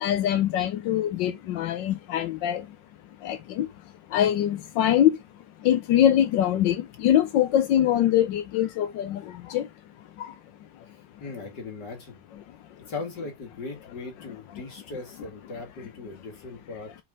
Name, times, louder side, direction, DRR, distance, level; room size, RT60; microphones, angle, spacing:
voice 1, 0.0-2.6 3.2-3.7 4.1-5.2 5.6-9.2 9.5-9.6, left 11 dB, 90° left, 1.4 m, -23 dB
voice 2, 10.9-12.2 12.9-16.9, left 3 dB, 65° left, 2.8 m, -39 dB
5.3 x 5.2 x 3.6 m
omnidirectional pair, 1.9 m